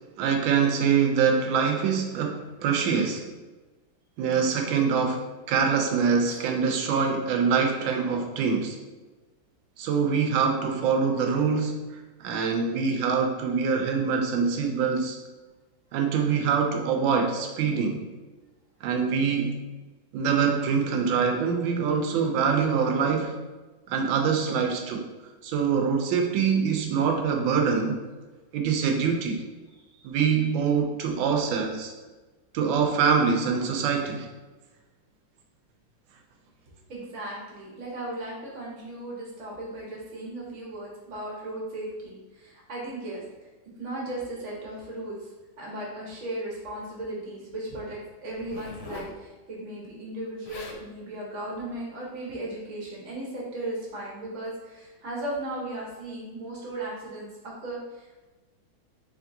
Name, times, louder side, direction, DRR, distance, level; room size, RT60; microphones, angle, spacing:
voice 1, 0.2-3.3 4.2-8.8 9.8-15.2 15.9-18.1 18.8-19.6 20.1-23.4 23.9-25.0 25.4-28.0 28.5-29.4 30.0-31.9 32.5-34.3, right 6 dB, 80° right, 3 dB, 1.3 m, -24 dB
voice 2, 36.9-43.5 43.8-45.3 45.6-58.2, right 1 dB, 55° right, -4 dB, 0.8 m, -36 dB
Zipper (clothing), 48.3-49.2 50.2-50.3 50.5-50.8 51.5-51.8, left 3 dB, 85° left, 1.4 m, -42 dB
3.5 x 3.2 x 2.6 m, 1.2 s
omnidirectional pair, 2.2 m